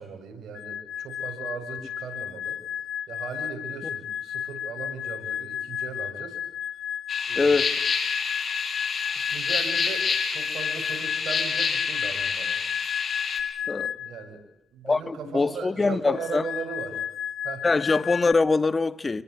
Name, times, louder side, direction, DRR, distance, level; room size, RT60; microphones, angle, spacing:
voice 1, 0.0-2.6 3.1-6.4 7.3-7.7 9.2-12.6 14.0-14.4 14.7-17.1 17.4-17.7, right 6 dB, 75° right, 7.4 m, -38 dB
sound 1, 0.5-14.3 16.1-18.3, left 9 dB, 70° left, 1.1 m, -33 dB
sound 2, 7.1-13.4, left 5 dB, 50° left, 5.6 m, -28 dB
voice 2, 7.4-7.7 13.7-13.9 14.8-16.4 17.6-19.2, left 3 dB, 30° left, 1.5 m, -23 dB
28.0 x 22.5 x 8.0 m
cardioid pair, 70°, 0 cm